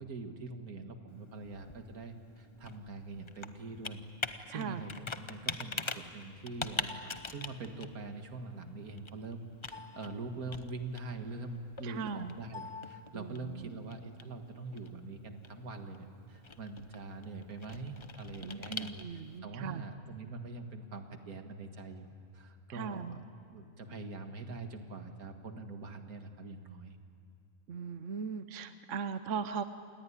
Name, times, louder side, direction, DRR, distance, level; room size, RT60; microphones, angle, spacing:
voice 1, 0.0-4.0 4.5-9.4 9.7-23.2 23.5-27.0, right 3 dB, 80° right, 6 dB, 2.2 m, -44 dB
Computer keyboard, 1.1-19.4, left 4 dB, 25° left, 0.7 m, -44 dB
voice 2, 4.5-4.8 11.8-12.4 13.1-13.7 18.4-19.8 22.7-23.2 27.7-29.6, right 6 dB, 60° right, 10 dB, 1.2 m, -39 dB
28.5 x 18.5 x 9.9 m, 2.6 s
omnidirectional pair, 1.5 m